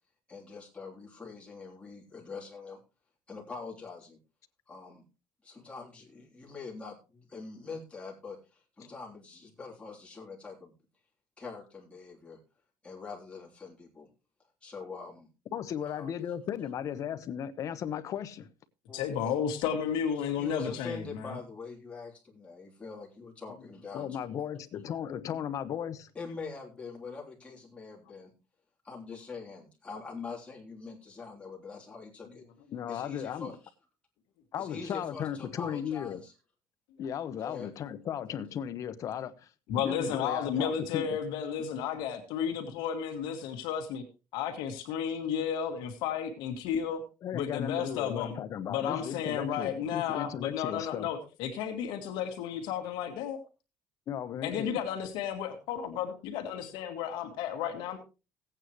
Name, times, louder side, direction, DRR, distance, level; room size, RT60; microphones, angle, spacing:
voice 1, 0.3-2.8 3.3-4.2 4.7-5.0 5.4-10.7 11.4-12.4 12.8-14.1 14.6-15.3 15.8-16.1 18.9-19.1 20.4-24.2 26.1-28.3 28.8-32.4 32.9-33.6 34.6-36.3 37.4-37.7, left 4 dB, 15° left, 3.4 m, -44 dB
voice 2, 15.5-18.5 23.9-26.1 32.7-33.5 34.5-36.2 37.0-41.1 47.2-51.1 54.1-54.8, left 9 dB, 45° left, 1.1 m, -36 dB
voice 3, 18.9-21.4 39.7-44.0 44.3-47.0 47.3-48.4 48.7-53.4 54.4-58.0, left 8 dB, 80° left, 2.1 m, -33 dB
16.5 x 9.0 x 3.1 m
cardioid pair, 145°, 8 cm